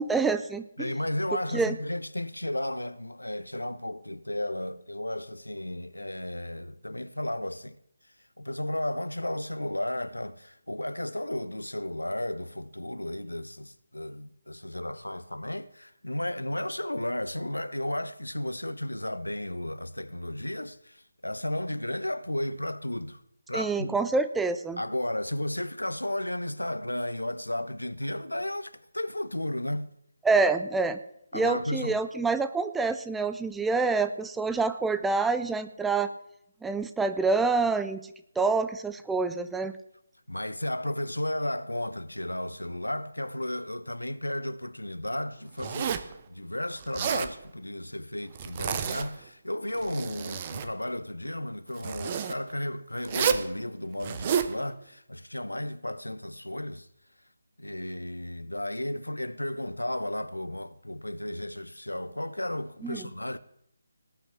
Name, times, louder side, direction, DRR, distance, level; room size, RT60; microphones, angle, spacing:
voice 1, 0.0-0.9 1.5-1.8 23.5-24.8 30.2-31.0 31.3-36.1 36.6-38.1 38.4-39.8 62.8-63.0, right 4 dB, 5° right, 0.5 m, -27 dB
voice 2, 0.8-7.8 8.4-23.2 23.5-24.0 24.8-29.9 31.3-32.0 40.3-46.0 46.3-56.9 57.6-63.4, left 1 dB, 80° left, 0.9 m, -33 dB
Zipper (clothing), 45.6-46.1 46.8-47.3 48.4-49.2 49.7-50.7 51.8-52.4 53.1-53.5 54.0-54.5, right 7 dB, 25° right, 0.8 m, -30 dB
18.5 x 6.3 x 8.3 m
figure-of-eight pair, 150°, 0 cm